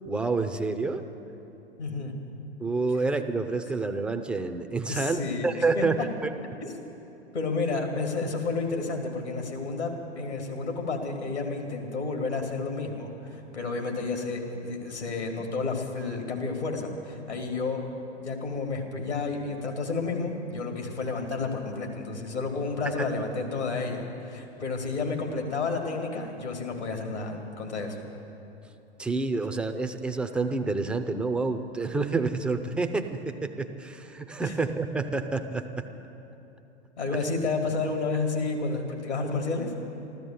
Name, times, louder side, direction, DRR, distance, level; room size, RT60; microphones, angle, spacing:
voice 1, 0.1-1.0 2.6-6.0 23.0-23.1 29.0-35.9 37.1-37.2, right 3 dB, 5° right, 7 dB, 0.4 m, -28 dB
voice 2, 1.8-2.1 4.9-6.1 7.3-17.8 18.2-28.0 34.4-34.6 37.0-39.7, left 3 dB, 80° left, 3 dB, 2.5 m, -31 dB
13.5 x 13.5 x 7.4 m, 3.0 s
figure-of-eight pair, 105°, 33 cm